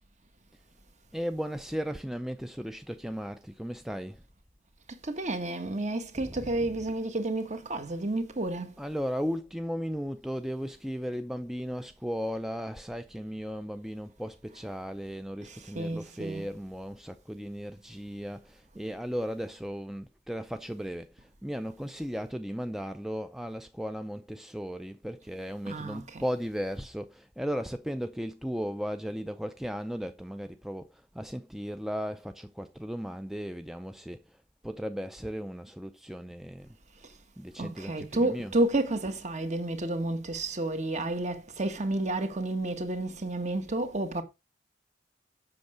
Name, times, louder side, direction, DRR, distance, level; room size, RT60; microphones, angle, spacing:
voice 1, 1.1-4.2 6.1-6.7 8.8-36.8 37.4-38.6, equal, ahead, 0.4 m, -36 dB
voice 2, 5.1-8.7 15.7-16.4 25.7-26.2 37.6-44.2, right 2 dB, 40° right, 1.4 m, -30 dB
8.0 x 6.5 x 4.9 m
head